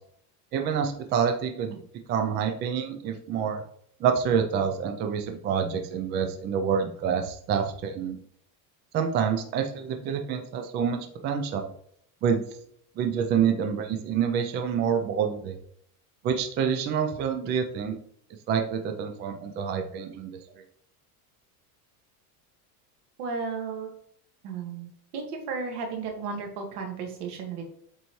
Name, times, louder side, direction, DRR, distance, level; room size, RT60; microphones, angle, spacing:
voice 1, 0.5-1.8 2.1-3.6 4.0-8.2 8.9-11.7 12.2-12.4 13.0-15.6 16.2-17.9 18.5-20.3, right 7 dB, 25° right, 5 dB, 0.4 m, -27 dB
voice 2, 23.2-23.9 24.4-27.6, right 5 dB, 80° right, 2 dB, 2.0 m, -34 dB
7.8 x 4.1 x 3.1 m, 0.66 s
cardioid pair, 165°, 45 cm